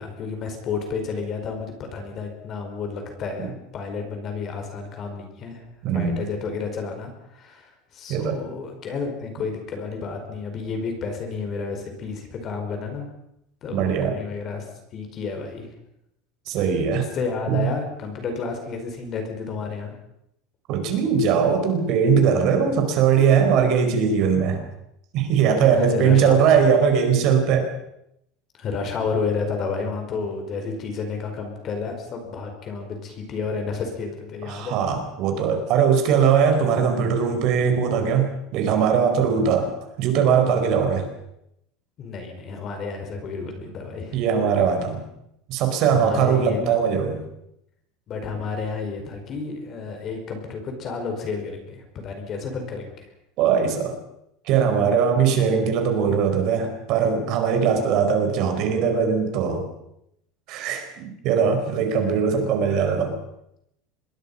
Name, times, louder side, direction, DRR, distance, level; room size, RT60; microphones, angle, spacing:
voice 1, 0.0-5.6 5.9-13.1 13.6-14.6 14.9-15.7 17.0-19.9 25.7-26.5 28.5-34.8 42.0-44.2 45.9-46.7 48.1-53.1 61.9-62.4, left 4 dB, 30° left, 5 dB, 4.9 m, -31 dB
voice 2, 5.8-6.2 8.1-8.4 13.7-14.1 16.5-17.1 17.5-17.7 20.7-24.6 25.1-27.7 34.5-39.7 40.0-41.1 44.1-45.0 45.5-47.2 53.4-54.0 54.4-59.7 60.5-63.2, right 7 dB, 45° right, 5 dB, 4.7 m, -20 dB
26.0 x 21.5 x 5.6 m, 0.80 s
cardioid pair, 170°, 0 cm